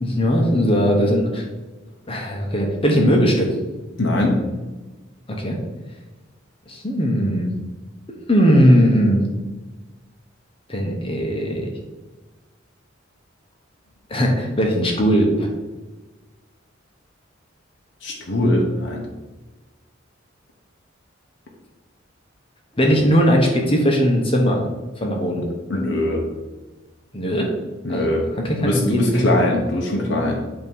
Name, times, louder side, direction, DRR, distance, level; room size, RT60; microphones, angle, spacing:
voice 1, 0.0-1.4 2.1-3.5 5.3-5.6 6.7-7.5 8.3-9.2 10.7-11.7 14.1-15.5 22.7-24.6 25.0-25.5 27.1-27.5 27.9-29.3, equal, 30° left, 1 dB, 1.0 m, -19 dB
voice 2, 4.0-4.4 18.0-19.1 25.7-26.2 27.8-28.2 28.6-30.4, left 1 dB, 65° left, -1 dB, 0.9 m, -21 dB
8.3 x 3.0 x 5.4 m, 1.2 s
head